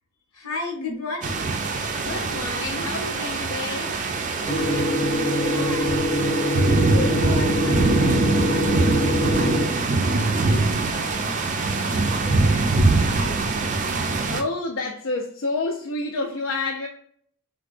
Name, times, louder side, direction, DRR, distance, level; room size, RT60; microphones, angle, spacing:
voice 1, 0.3-1.5 4.5-11.5 11.9-13.8, left 2 dB, 85° left, 1.1 m, -36 dB
sound 1, 1.2-14.4, right 3 dB, 35° right, 0.4 m, -23 dB
voice 2, 1.9-4.0 6.7-6.8 14.3-16.9, left 3 dB, 65° left, 0.5 m, -29 dB
sound 2, 4.5-9.6, left 1 dB, 15° left, 0.8 m, -24 dB
4.5 x 2.2 x 2.4 m
head